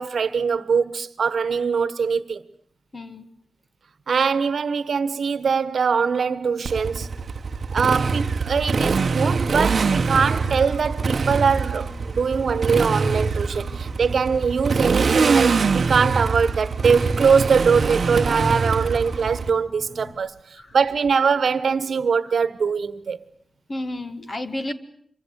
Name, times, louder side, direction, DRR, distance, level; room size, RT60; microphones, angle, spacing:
voice 1, 0.0-2.4 4.1-7.1 7.7-23.2, right 6 dB, 70° right, 1.2 m, -22 dB
voice 2, 2.9-3.3 20.5-20.7 23.7-24.7, left 1 dB, 30° left, 1.8 m, -31 dB
Motorcycle, 6.7-19.5, right 4 dB, 55° right, 1.0 m, -24 dB
Boat Water vehicle, 9.1-20.1, left 1 dB, 80° left, 6.3 m, -43 dB
26.0 x 23.5 x 8.1 m
wide cardioid pair, 165°, 0 cm